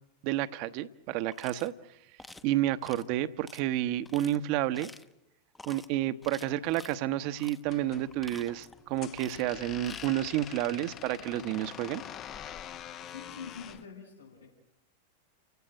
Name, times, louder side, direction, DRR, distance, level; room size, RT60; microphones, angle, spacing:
voice 1, 0.2-1.7 2.4-4.9 5.7-12.0, right 13 dB, 45° right, 13 dB, 1.0 m, -30 dB
sound 1, 1.3-1.7 2.2-2.5 2.8-3.1 3.5-3.6 4.0-4.4 4.7-5.1 5.5-5.9 6.2-7.0 7.4-7.6 8.0-8.8 9.1-9.5 9.8-10.1, left 2 dB, 10° left, 1.0 m, -49 dB
sound 2, 7.6-13.8, left 10 dB, 30° left, 0.8 m, -45 dB
voice 2, 13.1-14.5, left 6 dB, 85° left, -3 dB, 6.9 m, -45 dB
29.5 x 16.5 x 8.0 m, 0.89 s
figure-of-eight pair, 90°, 0 cm